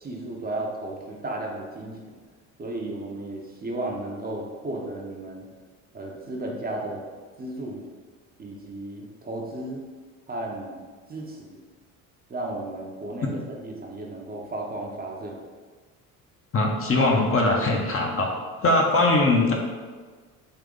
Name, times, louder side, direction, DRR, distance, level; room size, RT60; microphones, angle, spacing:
voice 1, 0.0-2.2 2.6-5.5 5.9-7.0 7.4-7.8 8.4-9.8 10.3-11.6 12.3-15.4, right 2 dB, 20° right, -1 dB, 0.7 m, -34 dB
voice 2, 16.5-18.3 18.6-19.5, left 2 dB, 30° left, 0 dB, 0.7 m, -21 dB
3.8 x 2.7 x 3.7 m, 1.5 s
hypercardioid pair, 65°, 43 cm